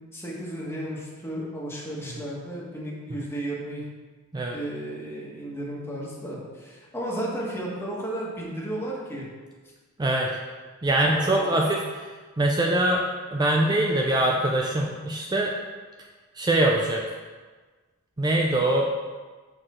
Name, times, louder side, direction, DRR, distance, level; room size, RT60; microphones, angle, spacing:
voice 1, 0.1-3.8 4.5-9.3 10.9-11.6, right 1 dB, 10° left, -5 dB, 1.4 m, -34 dB
voice 2, 10.0-10.3 10.8-12.1 12.4-15.5 16.3-17.0 18.2-18.8, right 1 dB, 20° right, 0 dB, 0.5 m, -23 dB
6.5 x 4.7 x 4.3 m, 1.4 s
head